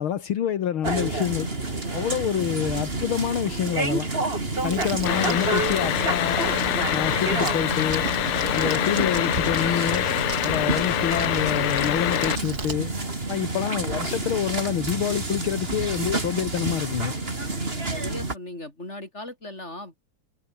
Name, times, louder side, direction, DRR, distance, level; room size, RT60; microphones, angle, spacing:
voice 1, 0.0-1.5 1.9-4.1 4.6-6.4 6.9-8.0 8.5-10.1 10.4-12.9 13.3-17.1, left 9 dB, 75° left, 2.2 m, -27 dB
sound 1, 0.8-18.3, right 2 dB, 25° right, 3.5 m, -29 dB
Crumpling crinkling, 4.6-12.7, right 3 dB, 45° right, 4.2 m, -37 dB
sound 2, 5.1-12.4, left 13 dB, 90° left, 1.8 m, -25 dB
voice 2, 17.9-19.9, left 1 dB, 30° left, 7.4 m, -38 dB
omnidirectional pair, 2.3 m